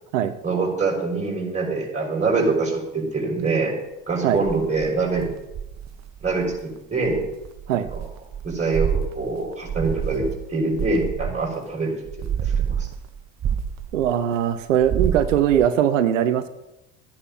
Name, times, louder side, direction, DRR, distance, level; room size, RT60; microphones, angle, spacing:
voice 1, 0.4-3.7 4.1-5.3 6.2-7.2 8.4-12.9, right 3 dB, 20° right, -1 dB, 6.4 m, -24 dB
sound 1, 4.3-6.6 7.0-11.7 12.1-14.3 14.7-15.7, right 8 dB, 45° right, 1.5 m, -28 dB
voice 2, 13.9-16.5, right 10 dB, 85° right, 10 dB, 1.1 m, -20 dB
15.0 x 9.9 x 5.7 m, 0.91 s
hypercardioid pair, 75°, 37 cm